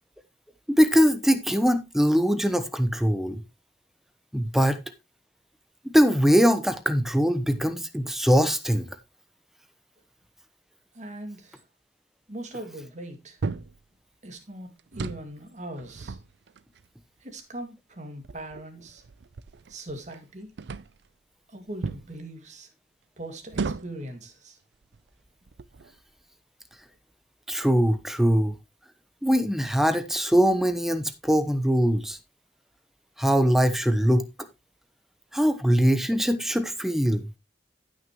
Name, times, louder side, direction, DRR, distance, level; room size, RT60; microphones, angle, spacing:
voice 1, 0.7-3.4 4.3-4.8 5.9-8.9 27.5-28.5 29.2-32.2 33.2-34.2 35.3-37.3, equal, ahead, 1.0 m, -22 dB
voice 2, 10.9-11.6 12.3-13.4 14.2-16.2 17.2-19.0 19.7-20.5 21.5-22.7 23.2-24.6, right 1 dB, 45° right, 2.2 m, -40 dB
sound 1, 13.4-13.8 14.8-15.3 15.8-16.9 17.6-17.7 18.2-20.2 20.6-21.1 21.8-22.1 23.5-24.1 24.8-25.0 25.5-26.0, right 4 dB, 80° right, 0.5 m, -35 dB
14.5 x 6.3 x 3.0 m
head